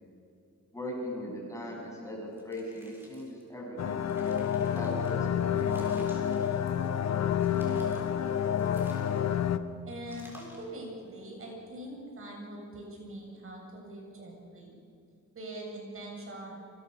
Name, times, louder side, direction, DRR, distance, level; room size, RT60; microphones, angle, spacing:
voice 1, 0.7-4.0 4.7-6.1, equal, 10° left, -2 dB, 7.9 m, -39 dB
sound 1, 2.3-3.4 3.9-5.1 5.6-7.0 7.4-8.1 8.6-9.5 10.0-10.7, equal, 5° right, 6.9 m, -55 dB
sound 2, 3.8-9.6, left 9 dB, 60° left, 1.2 m, -29 dB
voice 2, 9.8-14.8 15.3-16.5, right 1 dB, 45° right, 0 dB, 7.8 m, -43 dB
28.5 x 27.5 x 7.0 m, 2.4 s
wide cardioid pair, 140°, 30 cm